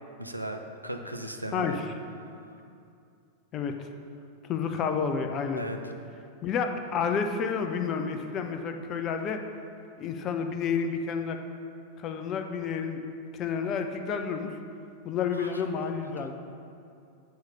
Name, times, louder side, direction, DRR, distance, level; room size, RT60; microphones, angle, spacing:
voice 1, 0.2-1.8 5.6-5.8 15.3-15.9 16.2-16.3, right 1 dB, 90° right, 4 dB, 0.5 m, -37 dB
voice 2, 3.5-3.9 4.5-5.6 6.4-9.4 10.0-11.4 12.0-13.0 13.4-14.5 15.0-16.3, left 6 dB, 35° left, 6 dB, 0.6 m, -30 dB
8.0 x 4.8 x 5.4 m, 2.5 s
figure-of-eight pair, 90°, 0 cm